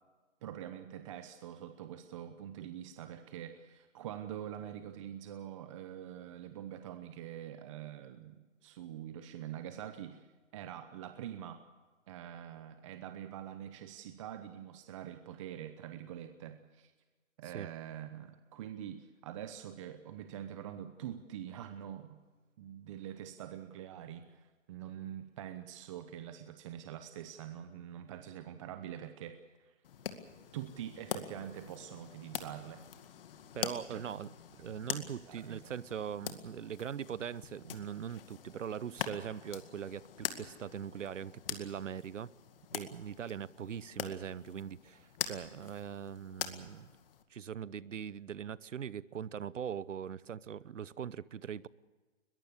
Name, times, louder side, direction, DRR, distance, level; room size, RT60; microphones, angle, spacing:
voice 1, 0.4-11.6 12.1-16.9 17.4-22.2 22.6-29.7 30.5-32.8 33.9-34.1 34.6-35.7, right 10 dB, 25° right, 0.9 m, -45 dB
sound 1, 29.8-47.2, left 9 dB, 45° left, 2.1 m, -44 dB
voice 2, 33.5-34.3 34.6-42.3 42.7-46.9 47.3-51.7, right 8 dB, 70° right, 1.0 m, -41 dB
22.0 x 22.0 x 6.7 m
hypercardioid pair, 150°, 39 cm